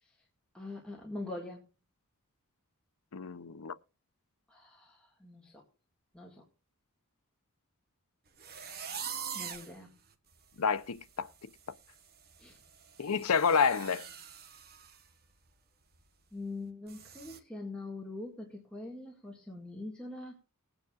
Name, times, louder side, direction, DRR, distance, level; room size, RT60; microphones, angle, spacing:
voice 1, 0.5-1.7 4.5-5.6 6.1-6.4 9.3-9.9 12.4-12.6 16.3-20.4, left 2 dB, 5° left, 2.0 m, -43 dB
voice 2, 3.1-3.7 10.6-11.3 13.0-14.1, left 6 dB, 70° left, 0.7 m, -29 dB
sound 1, 8.4-9.7 10.3-10.4 10.8-11.1 11.3-15.0 15.3-15.5 15.9-16.0 16.9-17.4, right 7 dB, 45° right, 1.4 m, -44 dB
20.5 x 9.0 x 2.4 m
head